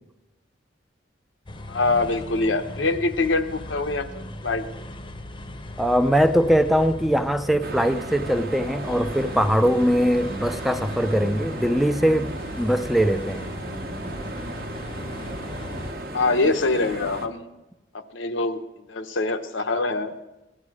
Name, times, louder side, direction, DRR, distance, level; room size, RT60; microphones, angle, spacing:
sound 1, 1.5-15.9, left 1 dB, 25° left, 0.8 m, -38 dB
voice 1, 1.7-4.7 16.1-17.5 18.1-18.6 18.9-20.1, left 3 dB, 85° left, 0.9 m, -24 dB
voice 2, 5.8-12.3 12.6-13.5, equal, ahead, 0.4 m, -21 dB
sound 2, 7.6-17.3, right 1 dB, 55° right, 1.1 m, -35 dB
17.5 x 11.5 x 4.8 m
head